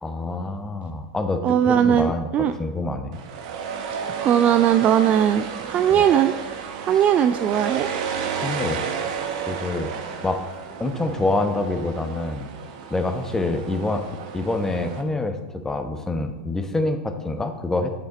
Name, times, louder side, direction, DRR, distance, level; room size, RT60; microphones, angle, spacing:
voice 1, 0.0-2.3 2.6-3.2 5.9-6.0 8.3-8.9 9.4-9.9 10.2-10.4 10.8-12.5 12.9-14.0 14.3-17.9, left 2 dB, 10° left, 7 dB, 1.0 m, -26 dB
voice 2, 1.4-2.5 4.1-6.3 6.8-7.9, right 9 dB, 30° right, 10 dB, 0.4 m, -19 dB
sound 1, 3.1-15.0, right 7 dB, 55° right, 1.2 m, -32 dB
10.5 x 7.4 x 4.2 m, 1.1 s
figure-of-eight pair, 90°, 5 cm